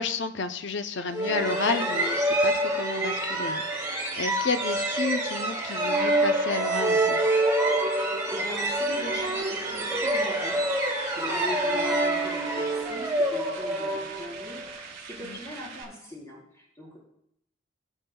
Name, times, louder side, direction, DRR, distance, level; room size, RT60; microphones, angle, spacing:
voice 1, 0.0-7.2 15.2-15.4, left 4 dB, 60° left, 9 dB, 0.6 m, -31 dB
sound 1, 1.1-14.6, right 1 dB, 15° right, 1.9 m, -26 dB
sound 2, 7.7-15.8, right 5 dB, 55° right, 3.4 m, -44 dB
voice 2, 7.8-17.0, left 1 dB, 15° left, -5 dB, 3.9 m, -40 dB
19.0 x 7.3 x 2.3 m, 0.74 s
head